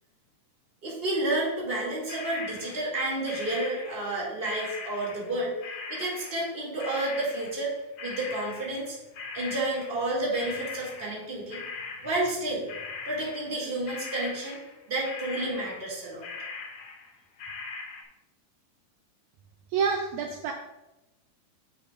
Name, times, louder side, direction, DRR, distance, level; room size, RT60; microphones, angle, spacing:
voice 1, 0.8-5.5 5.9-7.7 8.0-9.0 9.3-11.6 12.0-12.7 13.0-14.6 14.9-16.2, right 1 dB, 20° right, -4 dB, 2.3 m, -30 dB
sound 1, 2.1-4.2 4.4-11.3 11.5-14.8 15.0-16.0 16.2-18.0, left 4 dB, 60° left, 1.4 m, -40 dB
voice 2, 19.7-20.5, right 6 dB, 75° right, 3 dB, 1.9 m, -27 dB
8.7 x 8.5 x 2.5 m, 0.96 s
omnidirectional pair, 3.6 m